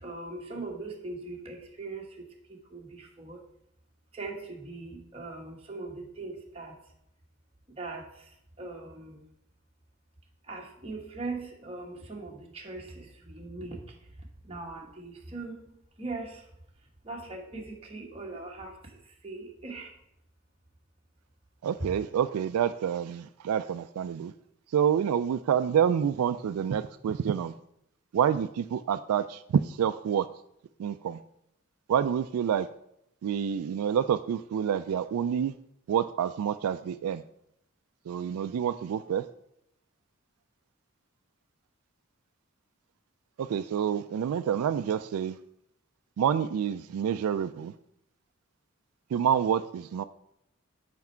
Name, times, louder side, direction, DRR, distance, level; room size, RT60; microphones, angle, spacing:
voice 1, 0.0-3.4 4.1-6.8 7.8-8.3 8.6-9.3 10.5-13.8 14.4-16.5 17.0-19.9, right 3 dB, 25° right, 0 dB, 1.1 m, -40 dB
voice 2, 21.6-24.3 24.7-27.5 28.1-30.3 30.8-31.2 31.9-32.7 33.2-35.5 35.9-37.2 38.1-39.2 43.4-45.4 46.2-47.7 49.1-50.0, right 8 dB, 90° right, 13 dB, 0.3 m, -28 dB
5.9 x 5.2 x 4.4 m, 0.75 s
head